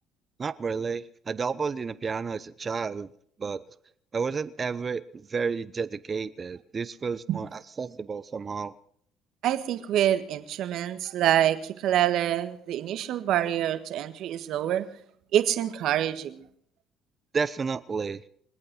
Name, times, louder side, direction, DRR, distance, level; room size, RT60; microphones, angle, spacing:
voice 1, 0.4-3.1 3.4-3.6 4.1-8.7 17.3-18.2, right 5 dB, 35° right, 15 dB, 0.9 m, -31 dB
voice 2, 9.4-14.9 15.3-16.4, right 11 dB, 65° right, 10 dB, 1.5 m, -26 dB
25.5 x 8.7 x 6.3 m, 0.63 s
supercardioid pair, 70°, 0 cm